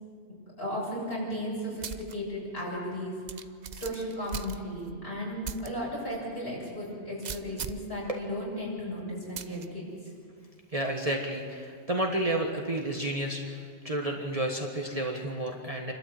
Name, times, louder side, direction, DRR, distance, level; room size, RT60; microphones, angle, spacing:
voice 1, 0.6-3.4 3.7-9.9, equal, 50° left, -5 dB, 7.2 m, -35 dB
sound 1, 1.8-2.1 2.6-2.7 3.3-5.0 5.4-5.7 6.1-6.2 7.2-7.9 9.4-9.7, right 6 dB, 45° right, 0.6 m, -39 dB
voice 2, 10.7-15.9, right 1 dB, 30° right, 0 dB, 1.6 m, -31 dB
28.5 x 12.5 x 7.8 m, 2.2 s
omnidirectional pair, 1.3 m